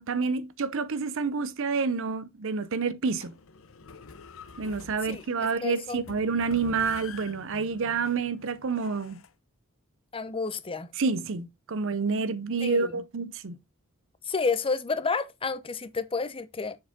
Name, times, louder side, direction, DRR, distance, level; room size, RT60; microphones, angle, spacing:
voice 1, 0.0-3.3 4.6-9.2 11.0-13.6, right 4 dB, 65° right, 0.6 m, -28 dB
sound 1, 3.1-9.3, left 5 dB, 65° left, 0.7 m, -46 dB
voice 2, 5.6-6.0 10.1-10.9 12.6-13.0 14.3-16.8, left 4 dB, 25° left, 0.6 m, -30 dB
7.2 x 4.7 x 3.5 m
head